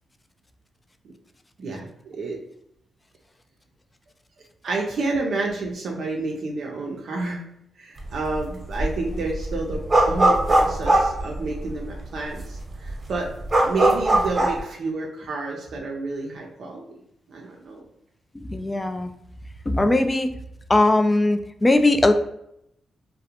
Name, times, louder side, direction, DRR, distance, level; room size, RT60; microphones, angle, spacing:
voice 1, 1.6-2.4 4.6-7.5 7.8-17.0 17.3-17.9, right 3 dB, 70° right, -1 dB, 0.4 m, -30 dB
sound 1, 8.0-8.4 8.7-11.9 12.4-12.5 12.7-14.6, right 1 dB, 35° right, 0.8 m, -20 dB
voice 2, 18.3-19.1 19.7-20.3 20.7-22.1, left 2 dB, 25° left, 7 dB, 0.3 m, -19 dB
2.4 x 2.0 x 2.8 m, 0.76 s
supercardioid pair, 55°, 0 cm